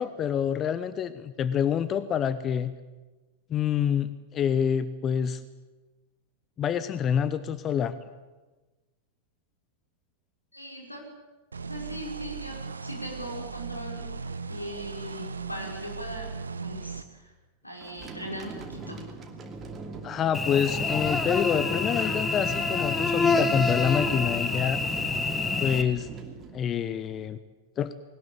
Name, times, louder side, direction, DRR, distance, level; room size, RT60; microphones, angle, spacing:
voice 1, 0.0-2.7 3.5-5.4 6.6-8.0 20.0-24.8 25.6-26.1 26.5-27.4 27.8-27.9, left 8 dB, 30° left, 14 dB, 0.9 m, -27 dB
voice 2, 10.5-11.0 11.6-16.3 16.6-17.3 17.6-19.1, equal, 85° left, 0 dB, 5.5 m, -39 dB
sound 1, 11.5-17.0, right 5 dB, 75° right, 1.0 m, -38 dB
sound 2, 17.8-27.2, right 4 dB, 25° right, 2.7 m, -42 dB
Cricket / Buzz, 20.3-25.8, left 3 dB, 15° left, 1.8 m, -27 dB
21.0 x 19.0 x 8.6 m, 1.2 s
figure-of-eight pair, 90°, 0 cm